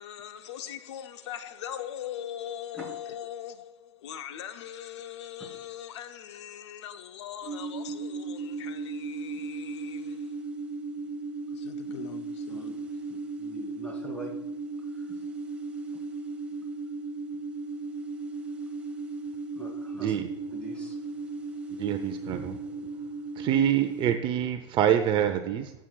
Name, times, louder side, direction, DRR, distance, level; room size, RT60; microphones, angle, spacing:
voice 1, 0.0-10.4 11.5-12.6, left 10 dB, 70° left, 0.7 m, -41 dB
sound 1, 7.4-24.1, right 3 dB, 10° right, 1.4 m, -36 dB
voice 2, 12.5-14.5 14.9-15.3 15.9-16.0 19.5-20.2 20.5-21.1 22.8-22.9, right 1 dB, 5° left, 3.2 m, -44 dB
voice 3, 19.9-20.3 21.7-22.6 23.4-25.7, right 10 dB, 35° right, 0.7 m, -26 dB
15.0 x 7.6 x 2.3 m
hypercardioid pair, 130°, 15 cm